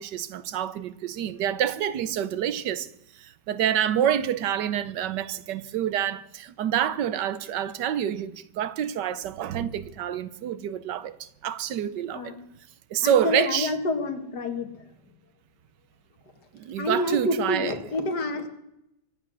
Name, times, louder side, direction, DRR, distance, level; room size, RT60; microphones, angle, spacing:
voice 1, 0.0-2.9 3.1-12.3 12.9-13.7 16.5-17.8, right 10 dB, 85° right, 1.4 m, -27 dB
voice 2, 13.0-14.7 16.8-18.5, left 2 dB, 70° left, 2.2 m, -28 dB
24.0 x 8.1 x 6.2 m
omnidirectional pair, 1.8 m